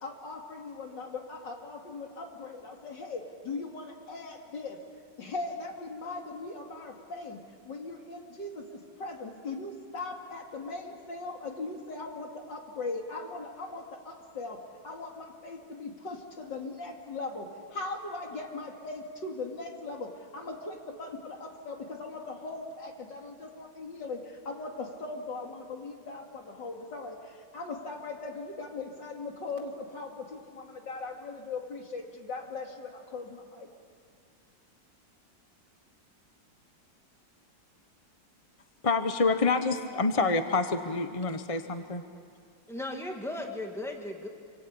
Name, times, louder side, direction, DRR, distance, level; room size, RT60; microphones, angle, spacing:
voice 1, 0.0-4.8 5.2-7.4 7.7-14.6 14.8-17.5 17.7-24.2 24.5-27.2 27.5-33.7, left 3 dB, 75° left, 3.1 m, -39 dB
voice 2, 38.8-42.0, left 3 dB, 25° left, 0.8 m, -27 dB
voice 3, 42.7-44.3, left 1 dB, ahead, 2.2 m, -36 dB
27.0 x 25.5 x 8.5 m
omnidirectional pair, 2.0 m